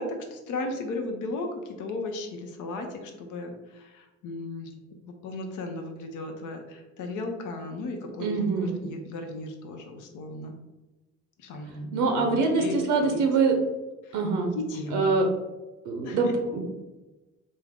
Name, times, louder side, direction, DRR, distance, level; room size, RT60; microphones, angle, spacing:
voice 1, 0.0-4.7 5.0-10.6 11.4-12.3 12.5-13.2 14.0-14.2 14.5-15.1 16.0-16.3, left 2 dB, 85° left, 4 dB, 0.6 m, -35 dB
voice 2, 8.2-8.8 11.9-13.5 14.1-14.5 14.9-15.3 15.8-16.6, right 4 dB, 85° right, 3 dB, 0.6 m, -24 dB
3.5 x 2.0 x 3.5 m, 1.1 s
cardioid pair, 90°, 30 cm